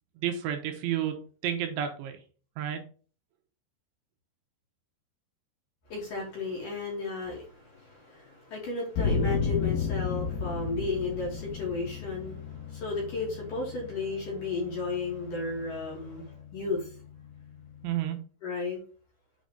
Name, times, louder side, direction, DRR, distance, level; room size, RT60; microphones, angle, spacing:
voice 1, 0.2-2.2 2.6-2.9 17.8-18.2, right 10 dB, 80° right, 5 dB, 3.2 m, -31 dB
voice 2, 5.9-16.9 18.4-18.8, left 3 dB, 50° left, -2 dB, 3.3 m, -34 dB
sound 1, 8.9-18.0, left 5 dB, 65° left, 2.9 m, -34 dB
8.3 x 4.1 x 4.9 m, 0.40 s
omnidirectional pair, 5.7 m